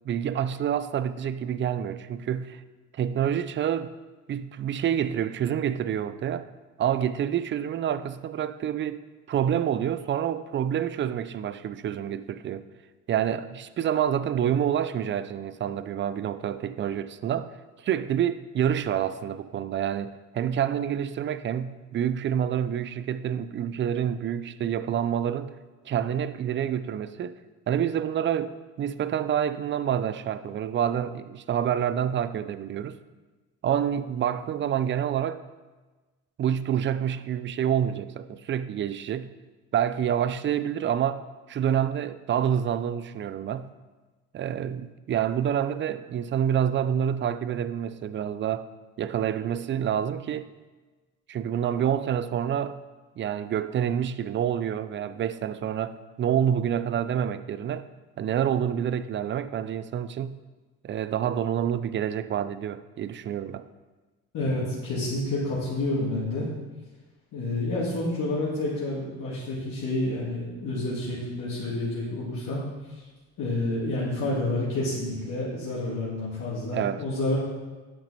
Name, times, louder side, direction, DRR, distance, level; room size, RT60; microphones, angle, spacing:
voice 1, 0.1-2.6 2.9-3.9 4.3-6.5 6.8-9.0 9.3-12.6 13.1-17.5 17.8-25.5 25.9-27.4 27.7-33.0 33.6-35.4 36.4-39.3 39.7-41.2 41.5-43.7 44.3-48.7 49.0-50.5 51.3-52.8 53.2-57.9 58.2-60.4 60.8-63.6 76.7-77.0, right 9 dB, 30° right, 0.4 m, -27 dB
voice 2, 64.3-66.5 67.3-72.6 73.0-73.1 73.4-77.4, left 2 dB, 55° left, 2.2 m, -29 dB
8.7 x 5.9 x 4.1 m
supercardioid pair, 85°, 37 cm